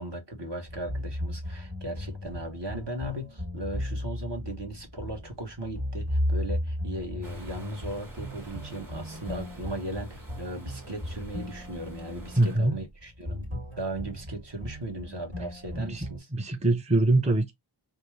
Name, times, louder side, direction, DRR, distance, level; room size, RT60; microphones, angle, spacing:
voice 1, 0.0-13.5 13.8-16.3, right 1 dB, 55° right, 1.4 m, -37 dB
sound 1, 0.7-16.2, left 1 dB, 75° right, 2.1 m, -36 dB
sound 2, 7.2-12.6, right 2 dB, 40° right, 1.7 m, -47 dB
voice 2, 12.4-12.7 15.8-16.1 16.3-17.5, right 2 dB, 15° right, 0.6 m, -23 dB
4.3 x 2.4 x 3.2 m
wide cardioid pair, 40°, 48 cm